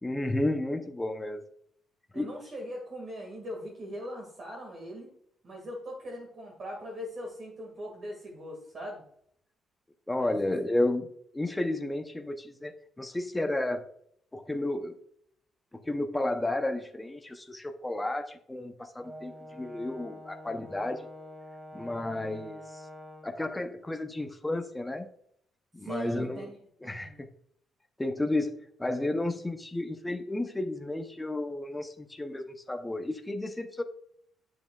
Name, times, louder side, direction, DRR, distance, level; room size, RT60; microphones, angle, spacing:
voice 1, 0.0-1.4 2.1-2.3 10.1-11.1 11.3-13.8 14.3-15.0 15.8-21.1 21.7-22.8 23.2-25.1 25.7-26.5 26.8-27.1 28.0-33.8, left 1 dB, 10° left, 6 dB, 0.6 m, -32 dB
voice 2, 2.1-5.1 5.4-9.0 10.2-10.5 25.8-26.6 26.8-27.2, equal, 50° right, -1 dB, 1.9 m, -40 dB
Brass instrument, 19.0-23.4, left 1 dB, 15° right, 2.1 m, -46 dB
7.8 x 7.2 x 2.3 m, 0.67 s
cardioid pair, 90°, 0 cm